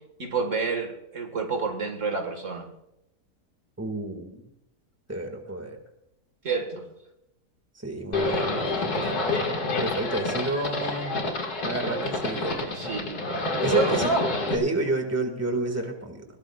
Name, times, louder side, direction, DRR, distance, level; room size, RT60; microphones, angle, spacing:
voice 1, 0.2-2.7 6.4-6.9 12.6-13.2 13.7-14.0, right 4 dB, 50° right, 4 dB, 2.1 m, -29 dB
voice 2, 3.8-4.5 5.1-5.8 7.8-9.5 9.8-11.2 11.6-12.9 13.6-14.2 14.5-16.2, right 2 dB, 10° right, 4 dB, 2.0 m, -30 dB
Livestock farm animals working animals, 8.1-14.5, left 2 dB, 75° left, 2.7 m, -28 dB
22.0 x 17.5 x 2.5 m, 0.86 s
omnidirectional pair, 1.7 m